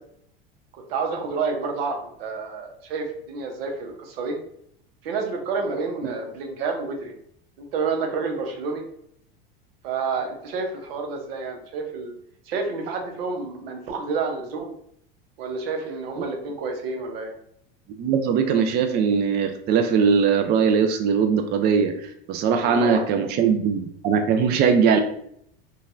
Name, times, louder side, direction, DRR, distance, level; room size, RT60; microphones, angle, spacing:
voice 1, 0.7-4.4 5.0-7.1 7.6-8.8 9.8-12.1 12.5-14.7 15.4-17.3 22.8-23.1, right 4 dB, 75° right, 3 dB, 0.8 m, -29 dB
voice 2, 18.0-25.0, right 6 dB, 35° right, 6 dB, 0.4 m, -21 dB
3.8 x 2.3 x 2.5 m, 0.70 s
hypercardioid pair, 100°, 30 cm